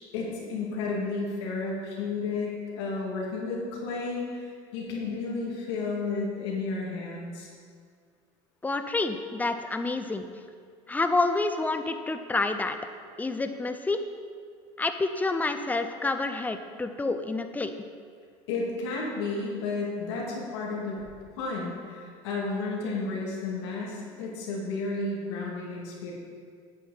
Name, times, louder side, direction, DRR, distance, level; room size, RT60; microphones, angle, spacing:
voice 1, 0.1-7.5 18.5-21.0 21.3-26.1, left 3 dB, 90° left, -3 dB, 2.3 m, -32 dB
voice 2, 8.6-10.3 10.9-12.8 13.2-14.0 14.8-17.7, left 3 dB, 10° left, 8 dB, 0.6 m, -28 dB
9.0 x 8.3 x 4.1 m, 2.1 s
supercardioid pair, 100°, 13 cm